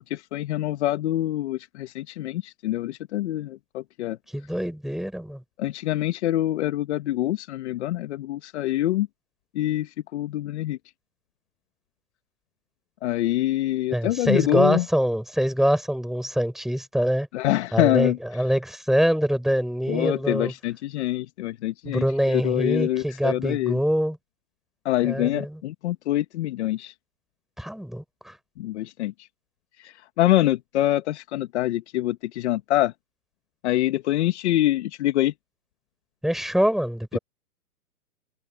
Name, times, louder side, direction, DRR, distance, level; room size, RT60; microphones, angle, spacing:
voice 1, 0.1-4.2 5.6-9.1 9.5-10.8 13.0-14.9 17.3-18.2 19.9-23.8 24.8-26.9 28.6-29.1 29.8-32.9 33.6-35.3 37.1-37.2, left 14 dB, 45° left, 2.2 m, -25 dB
voice 2, 4.3-5.4 13.9-17.3 17.7-20.5 21.8-24.2 25.0-25.6 27.6-28.4 36.2-37.2, equal, ahead, 5.9 m, -24 dB
hypercardioid pair, 145°, 48 cm